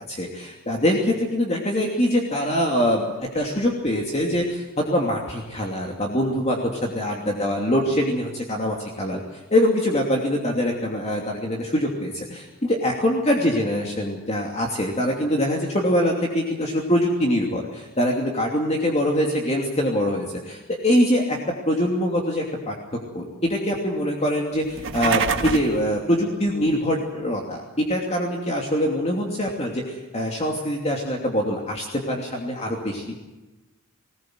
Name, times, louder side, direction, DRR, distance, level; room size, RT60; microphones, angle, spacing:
voice 1, 0.0-9.2 9.5-22.7 23.1-33.0, equal, 30° left, 0 dB, 2.8 m, -24 dB
sound 1, 24.6-25.8, right 5 dB, 60° right, 1.6 m, -25 dB
20.5 x 20.0 x 7.9 m, 1.1 s
head